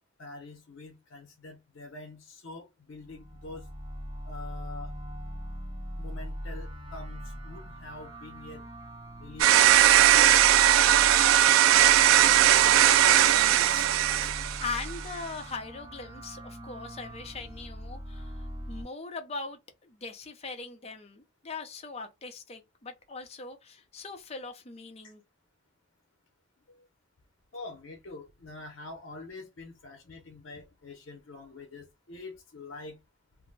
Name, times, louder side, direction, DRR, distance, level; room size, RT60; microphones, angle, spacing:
voice 1, 0.2-3.6 4.2-4.9 6.0-8.6 9.2-12.0 14.2-14.3 26.7-26.9 27.5-33.0, left 3 dB, 75° left, 0.7 m, -46 dB
sound 1, 2.9-18.8, equal, 25° right, 0.7 m, -41 dB
sound 2, 9.4-14.9, right 12 dB, 90° right, 0.3 m, -19 dB
voice 2, 12.8-13.9 14.6-25.2, left 4 dB, 30° left, 0.6 m, -40 dB
2.6 x 2.1 x 3.8 m
head